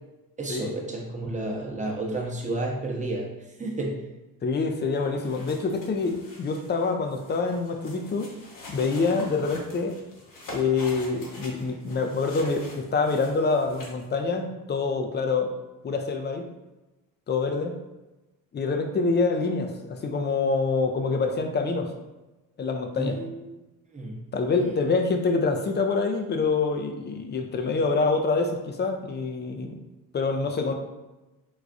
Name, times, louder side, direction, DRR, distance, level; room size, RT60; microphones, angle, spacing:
voice 1, 0.4-3.3 3.6-4.0 23.0-23.6 23.9-24.2, right 2 dB, 20° right, -2 dB, 0.9 m, -31 dB
voice 2, 4.4-8.3 8.7-10.0 10.5-15.5 15.8-16.5 17.3-17.7 18.5-21.9 22.6-23.2 24.3-29.8 30.1-30.7, left 4 dB, 30° left, 4 dB, 0.5 m, -26 dB
sound 1, 5.0-14.0, left 1 dB, 60° left, 1.1 m, -45 dB
4.8 x 2.2 x 2.5 m, 1.1 s
cardioid pair, 80°, 37 cm